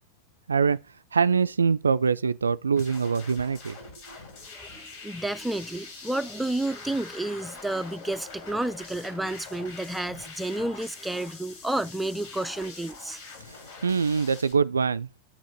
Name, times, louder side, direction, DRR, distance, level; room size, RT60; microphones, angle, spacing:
voice 1, 0.5-0.8 1.1-3.8 4.1-4.2 13.8-15.2, right 5 dB, 80° right, 0.3 m, -24 dB
sound 1, 2.8-14.5, left 4 dB, 55° left, 3.6 m, -44 dB
voice 2, 4.6-13.2, right 1 dB, 5° right, 0.5 m, -31 dB
8.6 x 5.1 x 5.0 m
figure-of-eight pair, 90°, 0 cm